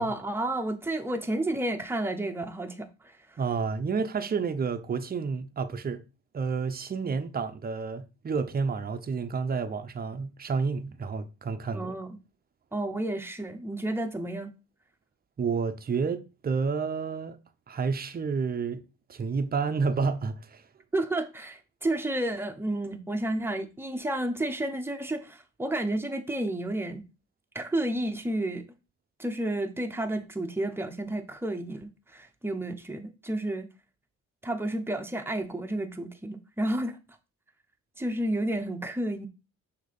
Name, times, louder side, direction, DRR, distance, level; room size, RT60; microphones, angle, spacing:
voice 1, 0.0-3.1 11.7-12.2 12.7-14.5 20.9-27.0 27.5-28.6 29.2-33.7 34.4-37.0 38.0-39.3, right 1 dB, 10° right, 1.0 m, -31 dB
voice 2, 3.4-6.0 6.3-11.9 15.4-17.4 17.7-18.8 19.1-20.6, right 5 dB, 30° right, 0.7 m, -30 dB
6.3 x 2.9 x 5.3 m
cardioid pair, 90°, 30 cm